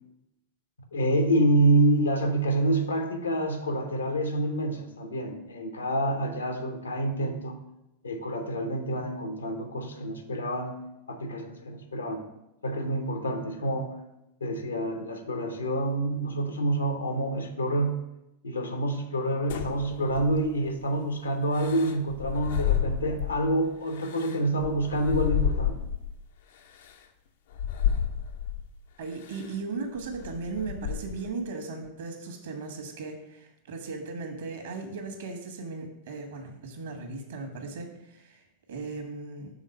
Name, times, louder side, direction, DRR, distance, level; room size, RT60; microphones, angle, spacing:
voice 1, 0.9-7.6 8.0-10.7 11.1-12.2 12.6-13.9 14.4-18.0 18.4-25.8, right 1 dB, 75° left, 5 dB, 0.9 m, -27 dB
sound 1, 19.5-20.7 21.5-23.5 23.9-26.1 26.8-26.9 27.5-28.7 29.2-29.5 30.0-31.3, left 9 dB, 60° left, 0.5 m, -30 dB
voice 2, 29.0-38.4 38.7-39.5, right 3 dB, 60° right, 4 dB, 1.2 m, -37 dB
6.3 x 3.7 x 5.5 m, 0.89 s
figure-of-eight pair, 90°, 0 cm